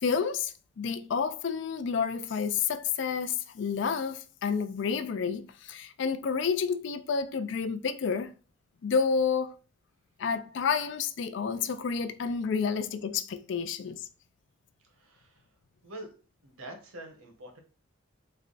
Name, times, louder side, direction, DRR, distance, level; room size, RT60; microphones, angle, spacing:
voice 1, 0.0-8.3 8.8-9.6 10.2-14.1, left 6 dB, 55° left, 0.3 m, -30 dB
voice 2, 14.8-15.5 15.8-16.1 16.4-17.6, right 1 dB, 80° right, 1.0 m, -45 dB
3.4 x 2.1 x 3.9 m
head